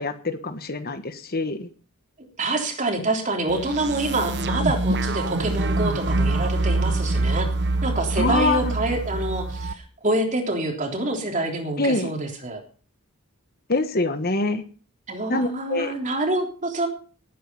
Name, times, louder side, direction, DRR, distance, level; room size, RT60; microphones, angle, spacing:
voice 1, 0.0-1.7 8.2-8.8 11.8-12.1 13.7-14.6 15.3-15.9, left 3 dB, 45° left, 10 dB, 1.3 m, -25 dB
voice 2, 2.4-7.5 7.8-12.6 15.1-16.9, right 2 dB, 35° right, 3 dB, 3.4 m, -26 dB
sound 1, 3.5-9.7, right 2 dB, 50° right, 1.1 m, -25 dB
19.5 x 9.3 x 5.5 m, 0.40 s
head